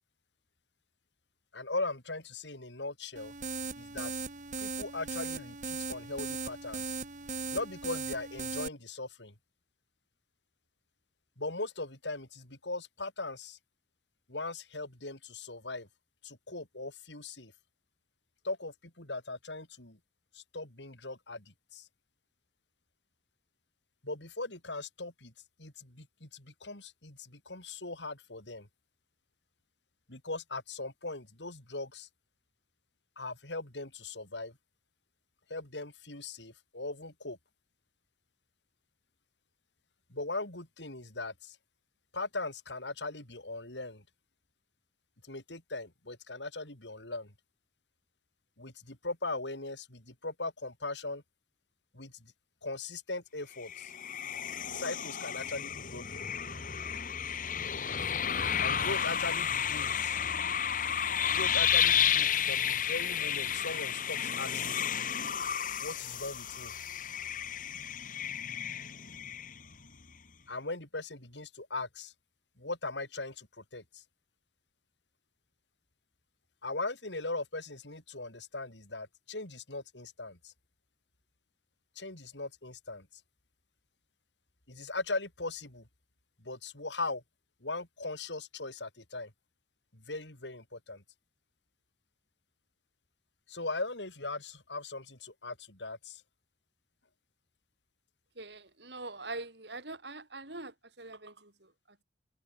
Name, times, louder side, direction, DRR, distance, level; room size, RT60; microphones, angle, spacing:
voice 1, 1.5-3.3 3.8-4.1 4.6-7.0 7.5-9.3 11.4-13.6 14.3-15.9 16.2-17.5 18.4-20.0 20.3-21.9 24.0-25.3 25.6-28.7 30.1-32.1 33.2-34.6 35.5-37.4 40.1-41.6 42.1-44.0 45.2-47.3 48.6-51.2 51.9-52.3 52.6-53.9 54.7-56.3 58.6-60.2 61.3-64.8 65.8-66.7 70.5-72.1 72.6-74.0 76.6-80.5 82.0-83.1 84.7-85.9 86.4-87.2 87.6-89.3 89.9-91.0 93.5-96.2, left 2 dB, 85° left, 6.4 m, -39 dB
sound 1, 3.2-8.7, right 4 dB, 45° right, 5.3 m, -38 dB
sound 2, 53.6-69.9, left 8 dB, 50° left, 1.8 m, -32 dB
voice 2, 98.4-102.0, right 2 dB, 75° right, 8.0 m, -44 dB
head